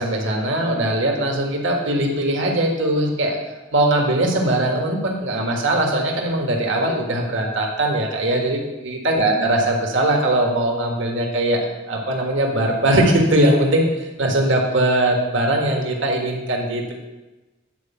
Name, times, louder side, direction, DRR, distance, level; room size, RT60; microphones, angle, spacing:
voice 1, 0.0-3.4 3.7-11.6 11.9-13.9 14.2-16.9, right 1 dB, 75° right, 0 dB, 1.7 m, -20 dB
9.6 x 4.7 x 7.0 m, 1.1 s
head